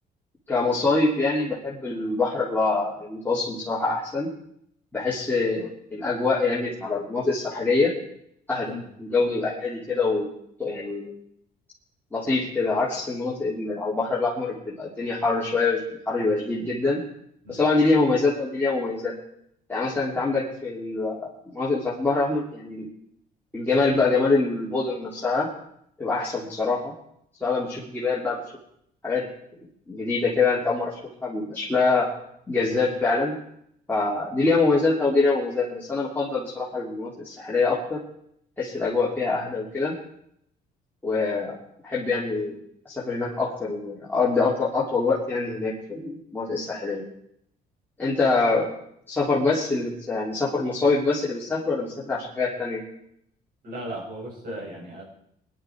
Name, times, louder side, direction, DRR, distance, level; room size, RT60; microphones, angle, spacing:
voice 1, 0.5-4.3 4.9-7.9 8.5-8.7 9.0-10.3 10.6-11.1 12.1-15.8 16.1-17.0 17.5-19.1 19.7-22.9 23.5-25.5 26.0-26.9 27.4-28.4 29.0-29.2 29.9-32.1 32.5-33.3 33.9-38.0 38.6-39.9 41.0-41.6 41.8-42.6 42.8-47.0 48.0-48.7 49.1-52.8, left 3 dB, 10° left, -6 dB, 3.3 m, -24 dB
voice 2, 53.6-55.0, equal, 60° right, -1 dB, 7.3 m, -36 dB
20.5 x 11.0 x 4.7 m, 0.72 s
cardioid pair, 110°, 17 cm